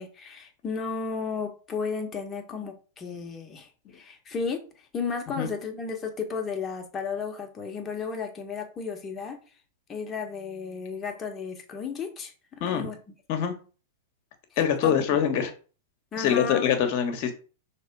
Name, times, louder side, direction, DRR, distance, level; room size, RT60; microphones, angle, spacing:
voice 1, 0.0-4.6 4.9-9.4 9.9-13.0 14.8-15.2 16.1-16.6, left 5 dB, 25° left, 3 dB, 1.7 m, -33 dB
voice 2, 14.6-15.5 16.2-17.3, left 8 dB, 50° left, 7 dB, 1.6 m, -24 dB
5.8 x 3.6 x 4.7 m, 0.36 s
figure-of-eight pair, 100°, 0 cm